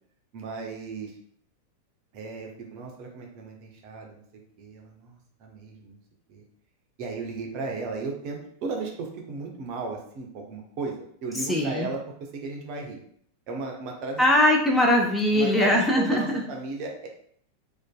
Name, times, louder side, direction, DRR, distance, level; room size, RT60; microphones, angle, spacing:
voice 1, 0.3-1.1 2.1-4.2 4.6-6.0 6.3-6.4 7.0-12.0 12.3-13.0 13.5-14.2 15.3-17.1, right 3 dB, 45° right, 1 dB, 0.5 m, -35 dB
voice 2, 11.3-11.9 14.2-16.4, left 1 dB, 10° left, 0 dB, 0.4 m, -21 dB
2.5 x 2.1 x 2.2 m, 0.64 s
figure-of-eight pair, 90°, 0 cm